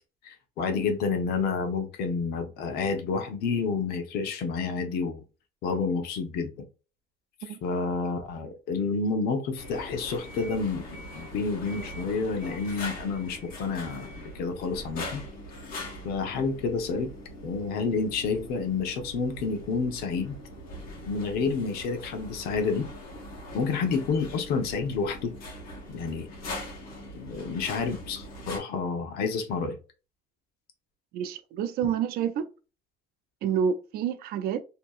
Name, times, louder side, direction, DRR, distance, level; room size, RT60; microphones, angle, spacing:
voice 1, 0.2-5.2 5.6-6.6 7.6-15.2 16.0-17.1 17.4-20.4 21.1-22.9 23.5-25.3 25.9-26.3 27.1-29.8, left 4 dB, 85° left, 0.8 m, -29 dB
sound 1, 9.6-28.6, left 1 dB, 65° left, 1.2 m, -42 dB
voice 2, 31.1-32.5 33.4-34.6, right 8 dB, 75° right, 0.4 m, -28 dB
2.8 x 2.7 x 2.3 m
cardioid pair, 125°, 16 cm